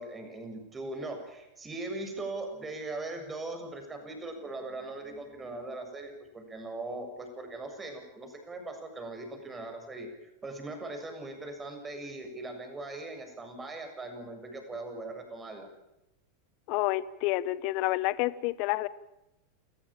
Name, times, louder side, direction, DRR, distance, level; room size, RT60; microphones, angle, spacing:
voice 1, 0.0-10.1 10.4-15.7, right 2 dB, 20° right, 5 dB, 7.2 m, -40 dB
voice 2, 16.7-18.9, left 17 dB, 55° left, 17 dB, 0.9 m, -29 dB
29.0 x 15.0 x 8.9 m, 0.93 s
hypercardioid pair, 105°, 0 cm